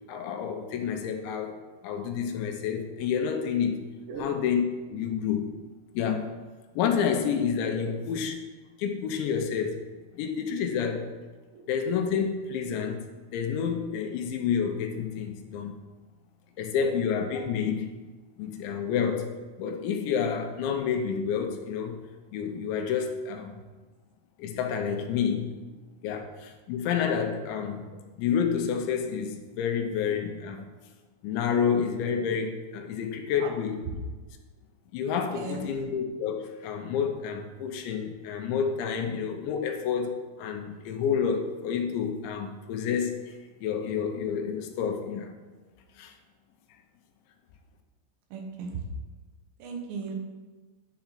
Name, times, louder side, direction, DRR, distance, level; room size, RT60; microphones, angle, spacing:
voice 1, 0.1-1.6 1.8-3.8 4.2-5.5 5.9-6.3 6.8-8.3 8.8-9.8 10.1-11.1 11.7-13.0 13.3-15.8 16.6-17.9 18.4-19.3 19.6-22.0 22.3-23.5 24.4-25.5 26.0-27.9 28.2-30.7 31.2-33.8 34.9-45.3 46.0-46.1, left 7 dB, 80° left, 4 dB, 3.0 m, -29 dB
voice 2, 35.3-35.7 48.3-48.8 49.6-50.1, right 4 dB, 75° right, 2 dB, 3.3 m, -37 dB
10.5 x 4.7 x 5.8 m, 1.3 s
omnidirectional pair, 5.4 m